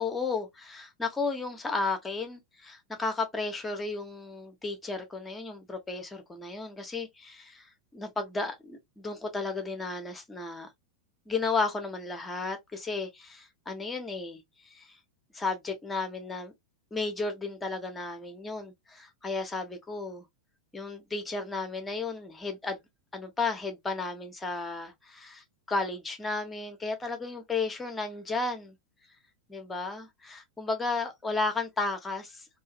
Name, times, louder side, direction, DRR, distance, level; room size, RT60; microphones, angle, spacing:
voice 1, 0.0-10.7 11.3-15.0 15.3-16.5 16.9-20.3 20.7-22.8 23.1-28.8 29.5-32.5, left 3 dB, 10° left, 0.8 m, -33 dB
2.7 x 2.4 x 2.6 m
figure-of-eight pair, 90°, 0 cm